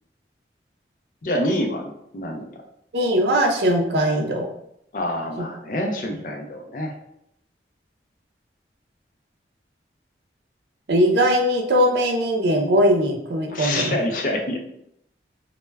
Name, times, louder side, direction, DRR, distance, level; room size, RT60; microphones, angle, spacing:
voice 1, 1.2-2.5 4.9-6.9 13.5-14.6, left 1 dB, 50° left, 2 dB, 0.4 m, -26 dB
voice 2, 2.9-4.5 5.4-5.5 10.9-14.0, equal, 75° right, 2 dB, 0.5 m, -20 dB
2.1 x 2.1 x 3.2 m, 0.76 s
head